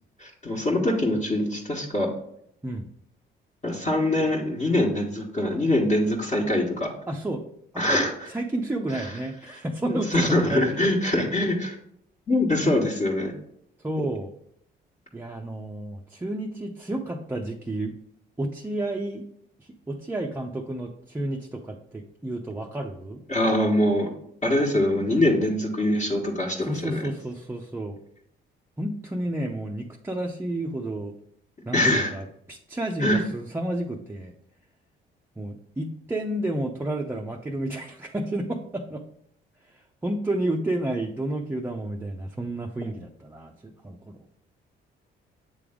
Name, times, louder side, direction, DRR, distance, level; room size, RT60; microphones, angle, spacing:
voice 1, 0.2-2.1 3.6-6.9 7.8-8.1 8.9-9.1 9.9-11.8 12.3-13.3 23.3-24.1 24.4-27.0 31.7-32.1 33.0-33.2, left 1 dB, 35° left, -3 dB, 1.3 m, -23 dB
voice 2, 7.1-7.4 7.7-10.8 13.8-14.3 15.1-17.9 18.4-19.2 19.6-23.2 26.6-28.0 28.8-31.1 31.6-34.3 35.4-39.0 39.7-44.2, right 1 dB, 10° right, 1 dB, 0.5 m, -31 dB
7.7 x 3.4 x 3.6 m, 0.71 s
cardioid pair, 90°, 20 cm